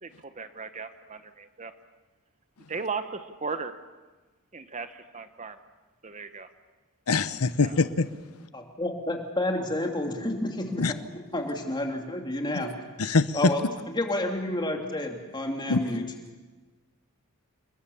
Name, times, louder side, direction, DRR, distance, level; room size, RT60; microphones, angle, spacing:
voice 1, 0.0-1.7 2.7-3.8 4.5-5.6 6.0-6.5 7.6-7.8, right 4 dB, 30° right, 10 dB, 1.2 m, -36 dB
voice 2, 7.1-8.1 10.8-10.9 13.0-13.4 15.7-15.8, left 4 dB, 90° left, 13 dB, 1.0 m, -24 dB
voice 3, 8.5-10.8 11.3-12.7 13.3-16.0, left 1 dB, 20° left, 3 dB, 3.1 m, -30 dB
28.5 x 21.5 x 7.2 m, 1.2 s
head